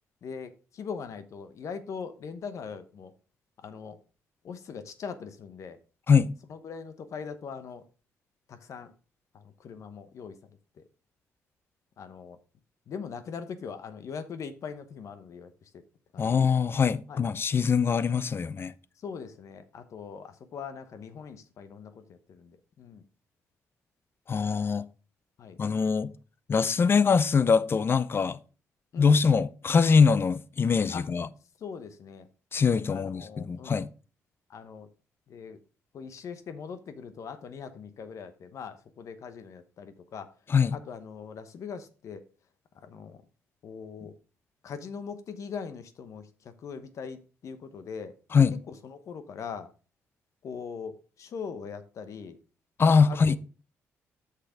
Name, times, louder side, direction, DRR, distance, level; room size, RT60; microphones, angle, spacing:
voice 1, 0.2-3.1 3.6-4.0 4.4-5.8 6.5-7.8 8.5-8.9 9.3-10.4 10.7-10.8 12.0-12.4 12.9-15.8 16.1-16.4 17.1-17.2 19.0-23.0 25.4-25.6 28.9-29.2 30.9-31.1 31.6-32.3 32.9-33.8 34.5-34.9 35.3-35.6 35.9-40.3 40.7-42.2 42.7-43.2 43.6-44.2 44.6-48.1 48.7-49.7 50.4-52.4 53.1-53.4, left 6 dB, 65° left, 1.0 m, -41 dB
voice 2, 16.2-18.7 24.3-24.9 25.6-26.1 26.5-28.4 29.0-31.3 32.5-33.2 33.5-33.9 40.5-40.7 48.3-48.5 52.8-53.4, left 5 dB, 45° left, 0.6 m, -23 dB
6.6 x 5.9 x 4.9 m
supercardioid pair, 65°, 6 cm